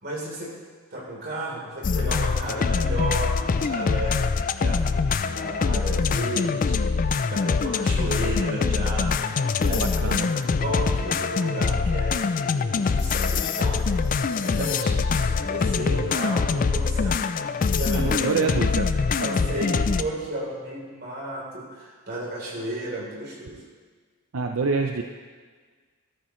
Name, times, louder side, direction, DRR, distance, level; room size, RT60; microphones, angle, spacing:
voice 1, 0.0-0.5 0.9-4.2 4.6-9.2 9.6-13.9 14.4-17.2 17.5-18.6 19.2-23.6, right 1 dB, 50° right, -4 dB, 3.6 m, -33 dB
sound 1, 1.8-20.0, left 4 dB, 40° left, 0.3 m, -24 dB
voice 2, 9.8-10.3 17.9-18.9 24.3-25.0, right 4 dB, 75° right, 4 dB, 0.6 m, -26 dB
13.5 x 13.5 x 3.2 m, 1.5 s
head